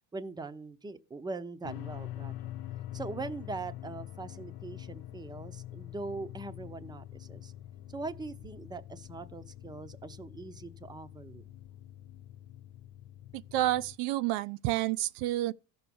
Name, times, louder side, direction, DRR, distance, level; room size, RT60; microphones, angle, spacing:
voice 1, 0.1-2.5 2.9-7.5 7.9-11.4, right 3 dB, 10° right, 0.7 m, -41 dB
sound 1, 1.6-14.0, left 13 dB, 55° left, 0.7 m, -45 dB
voice 2, 13.3-15.5, right 15 dB, 75° right, 0.5 m, -29 dB
14.0 x 6.1 x 6.9 m
cardioid pair, 120°, 44 cm